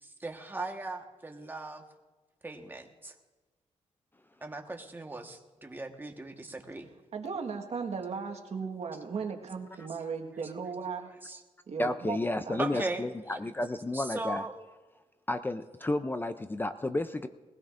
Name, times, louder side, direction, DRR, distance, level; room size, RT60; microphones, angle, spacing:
voice 1, 0.0-1.8 2.4-3.1 4.4-6.9 10.4-10.5 11.0-11.4 12.6-13.0 13.3-13.4 13.9-14.5, right 2 dB, 15° right, 3 dB, 1.3 m, -38 dB
voice 2, 7.1-11.1 11.7-12.2 12.5-12.6, right 5 dB, 60° right, 3 dB, 1.5 m, -36 dB
voice 3, 11.8-14.4 15.3-17.3, left 2 dB, 15° left, 10 dB, 0.5 m, -32 dB
21.0 x 16.0 x 2.6 m, 1.2 s
cardioid pair, 95°, 12 cm